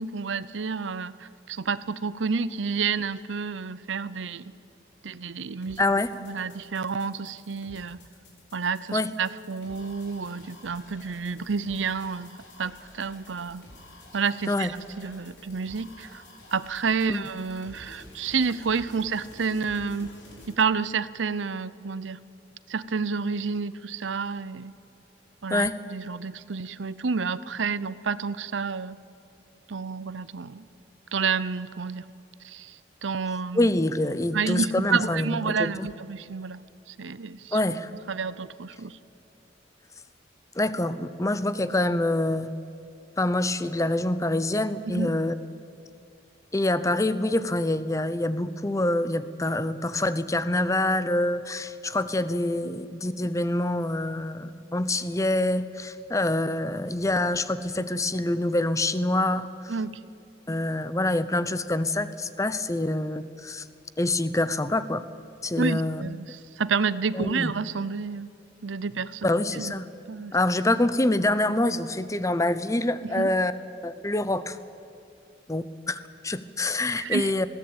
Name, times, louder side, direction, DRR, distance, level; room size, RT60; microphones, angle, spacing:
voice 1, 0.0-4.5 5.0-5.8 6.2-8.0 8.5-12.3 12.6-13.6 14.1-16.2 16.5-20.1 20.5-22.2 22.7-24.7 25.4-29.0 29.7-30.7 31.1-32.0 32.4-33.7 34.3-36.6 36.9-37.6 38.1-39.0 44.9-45.1 59.7-60.0 65.6-68.3 68.6-69.7 70.1-70.4 73.0-73.3 77.0-77.3, right 5 dB, 85° right, 17 dB, 0.7 m, -30 dB
sound 1, 5.6-20.5, left 1 dB, 70° left, 5.3 m, -50 dB
voice 2, 5.8-6.1 8.9-9.1 14.5-14.7 17.1-17.2 25.5-25.8 33.5-35.9 37.5-37.9 40.6-42.5 43.2-45.3 46.5-59.7 60.5-63.6 64.0-65.0 65.4-66.0 67.1-67.5 69.2-69.8 70.3-73.5 73.8-74.6 75.5-77.5, left 1 dB, 15° left, 14 dB, 0.8 m, -26 dB
20.5 x 17.0 x 8.9 m, 2.6 s
head